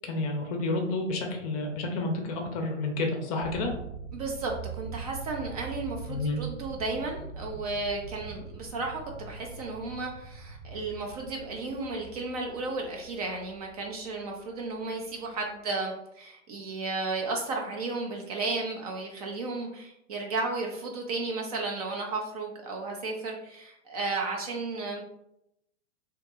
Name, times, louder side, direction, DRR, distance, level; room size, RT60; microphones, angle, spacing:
voice 1, 0.0-3.7 6.1-6.4, left 2 dB, 30° left, 2 dB, 0.6 m, -30 dB
sound 1, 3.4-15.6, right 5 dB, 50° right, 1.1 m, -43 dB
voice 2, 4.1-25.0, right 3 dB, 30° right, 1 dB, 0.4 m, -34 dB
2.7 x 2.2 x 3.7 m, 0.82 s
figure-of-eight pair, 110°, 38 cm